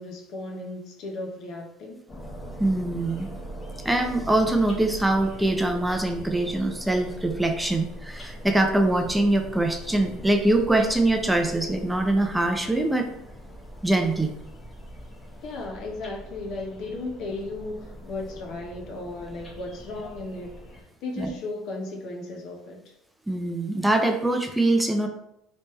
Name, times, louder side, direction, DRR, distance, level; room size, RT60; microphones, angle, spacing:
voice 1, 0.0-2.0 15.4-20.6 21.0-22.9, left 2 dB, 65° left, 0 dB, 0.8 m, -35 dB
sound 1, 2.1-20.8, equal, 25° left, 1.0 m, -41 dB
voice 2, 2.6-3.3 3.8-13.1 13.8-14.3 21.2-21.3 23.3-25.1, right 2 dB, 5° right, 4 dB, 0.4 m, -23 dB
3.2 x 3.1 x 3.1 m, 0.82 s
supercardioid pair, 95°, 0 cm